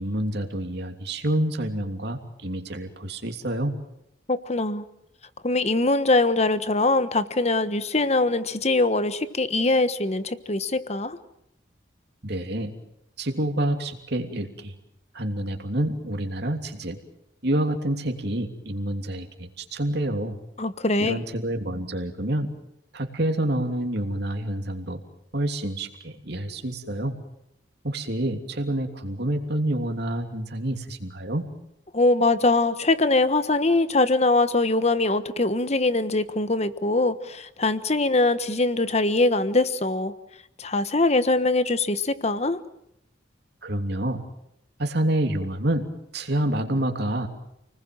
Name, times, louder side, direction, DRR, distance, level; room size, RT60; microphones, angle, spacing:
voice 1, 0.0-3.8 12.2-12.7 13.2-14.7 15.1-17.0 17.4-20.4 21.0-22.5 22.9-25.0 25.3-27.2 27.8-31.5 43.6-44.2 44.8-45.9 46.1-47.3, right 1 dB, 60° right, 5 dB, 3.1 m, -28 dB
voice 2, 4.3-4.8 5.4-11.2 20.6-21.2 31.9-40.1 40.6-42.6, left 2 dB, 35° left, 12 dB, 1.3 m, -22 dB
29.5 x 20.0 x 7.7 m, 0.79 s
head